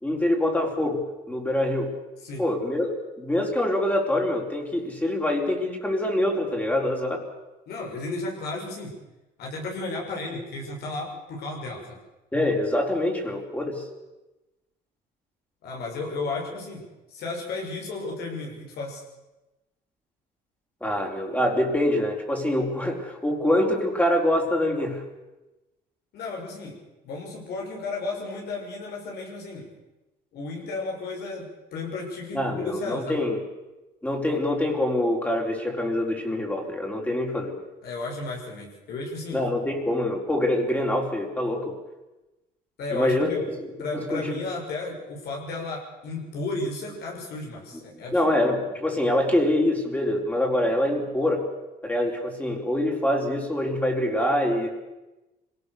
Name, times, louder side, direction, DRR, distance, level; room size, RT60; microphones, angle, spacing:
voice 1, 0.0-1.9 2.4-2.9 3.2-7.2 12.3-13.8 20.8-25.0 32.3-33.4 34.0-37.6 39.3-41.8 42.9-43.3 43.9-44.2 48.1-51.5 51.8-54.7, left 1 dB, 10° left, 1 dB, 4.5 m, -25 dB
voice 2, 7.7-9.0 9.4-12.0 15.6-19.0 26.1-29.7 30.3-33.2 37.8-39.4 42.8-43.5 43.8-48.2, left 3 dB, 70° left, 0 dB, 7.1 m, -33 dB
25.0 x 18.0 x 6.9 m, 1.0 s
cardioid pair, 110°, 17 cm